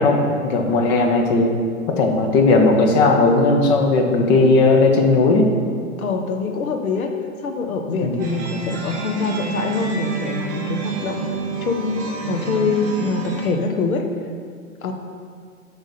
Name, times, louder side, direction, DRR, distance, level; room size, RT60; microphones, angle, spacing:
voice 1, 0.0-1.5 1.9-5.5 8.0-8.2, left 3 dB, 30° left, 3 dB, 0.7 m, -16 dB
voice 2, 6.0-7.1 7.4-11.2 11.6-14.0 14.8-14.9, left 4 dB, 75° left, 5 dB, 0.9 m, -24 dB
sound 1, 8.2-13.5, right 4 dB, 15° right, 0.3 m, -29 dB
7.9 x 3.5 x 4.2 m, 2.1 s
hypercardioid pair, 115°, 43 cm